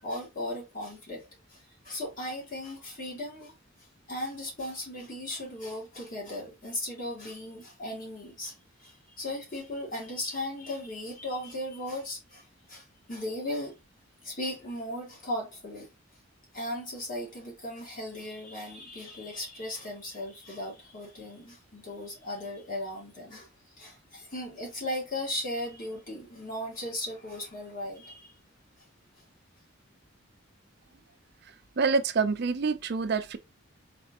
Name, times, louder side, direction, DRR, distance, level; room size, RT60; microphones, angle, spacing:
voice 1, 0.0-3.5 4.1-13.8 14.2-15.9 16.5-23.5 23.8-28.4, left 1 dB, 45° left, 2.0 m, -37 dB
voice 2, 31.8-33.4, right 4 dB, 55° right, 0.5 m, -26 dB
4.1 x 3.3 x 2.8 m
head